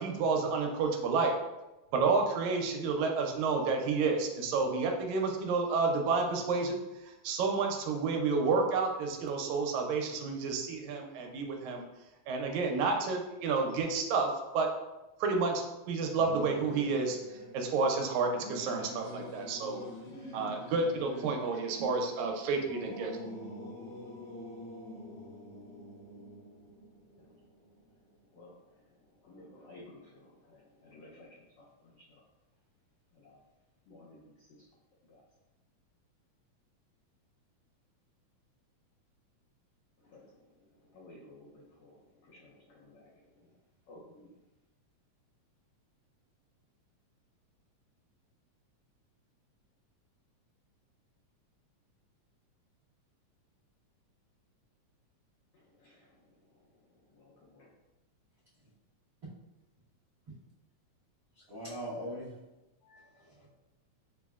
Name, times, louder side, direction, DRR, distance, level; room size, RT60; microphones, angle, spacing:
voice 1, 0.0-1.3 1.9-6.8 7.2-11.8 12.3-14.7 15.2-17.2 17.5-19.8 20.3-23.1, right 4 dB, 85° right, 2 dB, 1.9 m, -30 dB
Singing / Musical instrument, 16.2-28.0, left 1 dB, 60° left, 1.1 m, -46 dB
voice 2, 29.2-31.3 33.2-33.4 33.9-34.2 40.1-40.2 40.9-41.9 42.3-42.4 42.7-43.0 43.9-44.3 55.8-55.9 57.2-57.7, left 2 dB, 85° left, -5 dB, 1.3 m, -54 dB
voice 3, 61.5-62.3 62.8-63.5, equal, 70° right, -13 dB, 0.9 m, -41 dB
6.1 x 2.0 x 2.3 m, 1.0 s
omnidirectional pair, 3.4 m